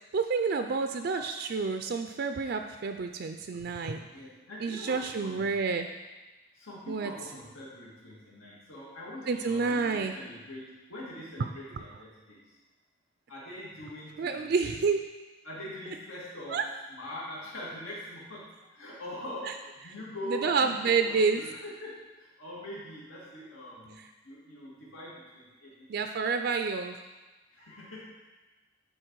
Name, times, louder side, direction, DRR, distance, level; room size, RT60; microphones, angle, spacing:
voice 1, 0.1-4.0 4.6-5.9 6.9-7.1 9.3-10.1 14.2-15.0 16.5-16.6 20.3-21.4 25.9-27.0, right 4 dB, 50° right, 6 dB, 0.4 m, -29 dB
voice 2, 4.0-5.6 6.5-12.6 13.3-14.8 15.4-16.6 16.9-25.9 26.1-26.3 27.5-28.1, left 1 dB, 85° left, -6 dB, 2.1 m, -43 dB
10.0 x 4.4 x 4.7 m, 1.2 s
head